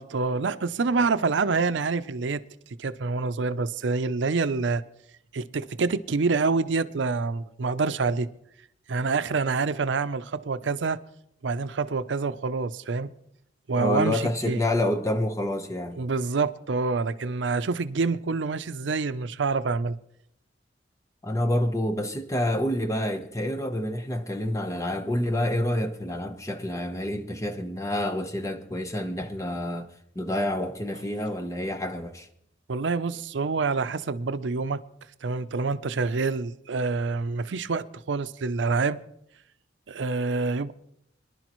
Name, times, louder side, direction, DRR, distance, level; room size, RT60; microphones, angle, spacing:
voice 1, 0.0-2.4 2.8-4.8 5.3-8.3 8.9-11.0 11.4-13.1 13.7-14.6 16.0-20.0 32.7-34.8 35.2-39.0 39.9-40.7, right 4 dB, 75° right, 0.6 m, -27 dB
voice 2, 13.8-16.0 21.2-29.9 30.1-32.3, left 1 dB, 15° left, 0.9 m, -28 dB
23.5 x 11.0 x 3.1 m
head